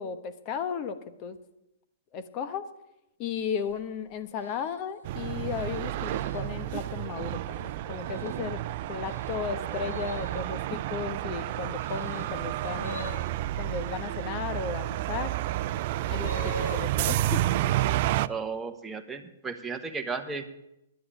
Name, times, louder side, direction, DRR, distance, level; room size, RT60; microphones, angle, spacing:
voice 1, 0.0-1.4 2.1-2.6 3.2-8.6 8.9-13.3 13.6-15.3 16.1-17.4, left 7 dB, 35° left, 11 dB, 1.2 m, -35 dB
sound 1, 3.4-3.8 4.4-6.7 7.3-7.7 8.1-14.0 14.8-16.8, equal, 75° left, 5.2 m, -44 dB
sound 2, 5.0-18.3, right 15 dB, 50° right, 0.4 m, -30 dB
voice 2, 18.3-20.4, right 4 dB, 10° right, 4 dB, 1.2 m, -34 dB
10.0 x 7.8 x 9.0 m, 0.86 s
hypercardioid pair, 125°, 0 cm